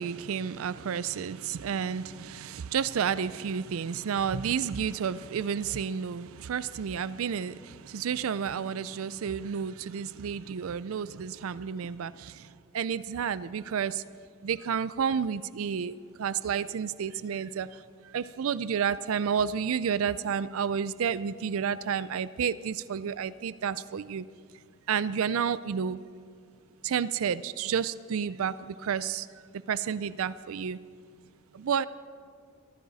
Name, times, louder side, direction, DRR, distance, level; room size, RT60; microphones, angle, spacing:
voice 1, 0.0-12.4 12.7-14.0 14.4-17.7 18.1-24.2 24.9-26.0 26.8-28.5 28.8-29.3 29.7-30.8 31.5-31.9, right 7 dB, 70° right, 17 dB, 0.4 m, -30 dB
23.0 x 15.0 x 4.1 m, 2.1 s
head